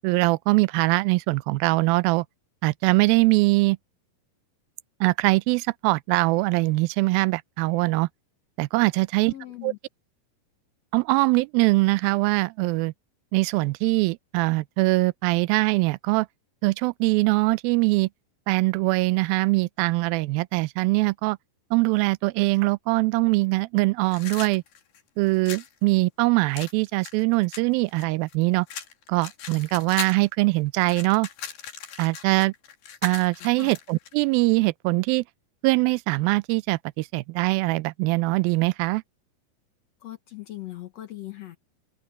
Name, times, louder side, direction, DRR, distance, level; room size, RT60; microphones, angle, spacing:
voice 1, 0.0-2.3 2.6-3.8 5.0-8.1 8.6-9.3 9.6-9.7 10.9-12.9 13.3-16.3 16.6-18.1 18.5-21.4 21.7-24.6 25.2-28.7 29.1-31.3 32.0-32.5 33.0-35.2 35.6-39.0, right 23 dB, 90° right, 2.4 m, -22 dB
voice 2, 9.3-9.8 33.4-33.7 40.0-41.6, left 15 dB, 65° left, 1.9 m, -39 dB
sound 1, 24.1-25.7 26.5-28.3 28.7-30.3 30.6-34.1, left 8 dB, 80° left, 4.1 m, -39 dB
open air
omnidirectional pair, 4.1 m